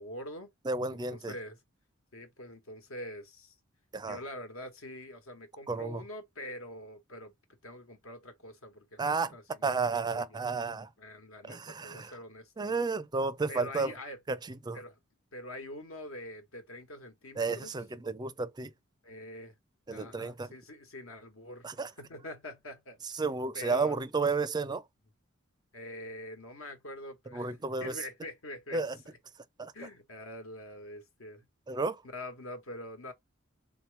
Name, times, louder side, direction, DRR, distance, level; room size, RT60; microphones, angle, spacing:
voice 1, 0.0-0.5 0.9-1.6 2.1-3.5 4.1-7.3 7.6-10.5 11.0-12.7 13.5-14.2 14.7-15.0 15.3-17.7 19.0-19.6 19.9-21.7 22.0-23.0 23.5-24.0 25.7-28.8 29.7-31.5 32.1-33.1, left 1 dB, 70° left, 1.3 m, -45 dB
voice 2, 0.6-1.3 3.9-4.2 5.7-6.0 9.0-9.3 9.6-10.9 11.4-12.1 12.6-13.9 14.3-14.8 17.4-18.7 19.9-20.5 21.6-21.9 23.2-24.8 27.3-27.9 28.7-29.0 29.6-29.7 31.7-32.0, right 4 dB, 20° right, 0.4 m, -32 dB
3.7 x 3.0 x 3.2 m
head